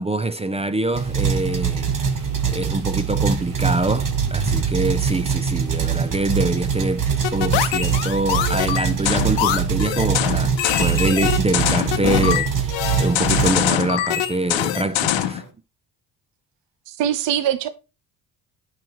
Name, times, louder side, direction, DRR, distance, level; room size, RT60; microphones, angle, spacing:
voice 1, 0.0-1.9 2.5-15.4, right 2 dB, 15° right, 0.4 m, -25 dB
sound 1, 0.9-14.1, right 6 dB, 45° right, 1.5 m, -23 dB
sound 2, 3.9-5.7, right 6 dB, 85° right, 1.2 m, -30 dB
sound 3, 7.2-15.4, left 11 dB, 75° left, 0.9 m, -23 dB
voice 2, 16.9-17.7, right 10 dB, 65° right, 0.9 m, -22 dB
10.5 x 5.5 x 3.0 m
supercardioid pair, 75°, 46 cm